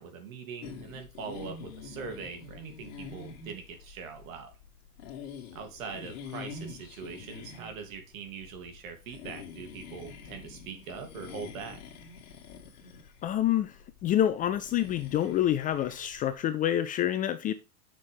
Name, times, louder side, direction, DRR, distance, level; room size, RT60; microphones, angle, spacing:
voice 1, 0.0-4.5 5.5-11.8, right 5 dB, 65° right, 3.0 m, -42 dB
sound 1, 0.6-16.4, left 5 dB, 55° left, 2.3 m, -46 dB
voice 2, 13.2-13.8 14.0-17.5, left 11 dB, 20° left, 0.4 m, -27 dB
7.6 x 6.3 x 3.5 m
hypercardioid pair, 110°, 43 cm